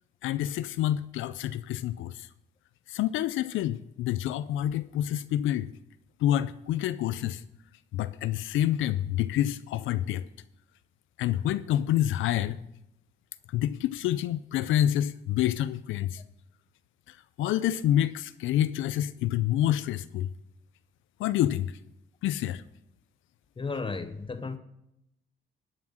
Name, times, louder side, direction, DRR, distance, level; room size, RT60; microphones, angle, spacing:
voice 1, 0.2-2.3 2.9-5.7 6.2-7.4 7.9-10.3 11.2-12.6 13.5-16.2 17.1-20.3 21.2-21.7 22.2-22.6, left 12 dB, 80° left, 0.4 m, -28 dB
voice 2, 23.6-24.6, left 4 dB, 25° left, 0.8 m, -34 dB
12.0 x 5.9 x 6.3 m
cardioid pair, 90°, 20 cm